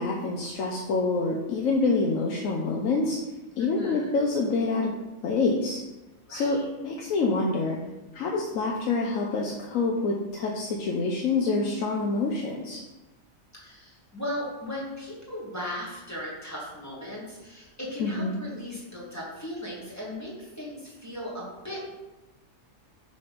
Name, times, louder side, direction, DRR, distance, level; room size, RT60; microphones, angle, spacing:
voice 1, 0.0-3.2 3.6-4.9 5.2-5.8 6.3-7.8 8.1-12.8 18.0-18.4, left 3 dB, 80° left, -1 dB, 1.2 m, -26 dB
voice 2, 3.6-4.1 6.3-6.6 13.5-21.9, left 1 dB, 10° left, -6 dB, 2.3 m, -37 dB
6.3 x 4.0 x 6.0 m, 1.1 s
omnidirectional pair, 1.4 m